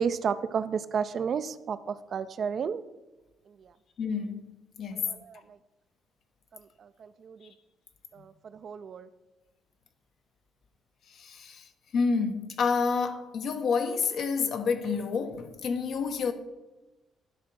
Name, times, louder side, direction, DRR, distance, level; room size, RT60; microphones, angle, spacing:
voice 1, 0.0-2.8 3.5-3.7 4.9-5.6 6.5-7.5 8.1-9.1, right 6 dB, 55° right, 0.4 m, -33 dB
voice 2, 4.0-4.4 4.8-5.1 11.1-16.3, left 5 dB, 70° left, 0.9 m, -29 dB
10.0 x 3.6 x 6.0 m
cardioid pair, 80°, 0 cm